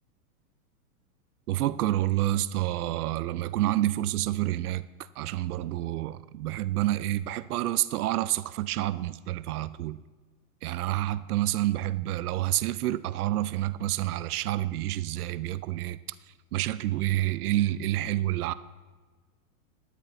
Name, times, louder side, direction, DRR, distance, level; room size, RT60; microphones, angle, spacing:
voice 1, 1.5-4.8 5.2-10.0 10.6-16.0 16.5-18.5, right 15 dB, 90° right, 0.5 m, -28 dB
12.5 x 10.0 x 3.9 m
supercardioid pair, 180°, 43 cm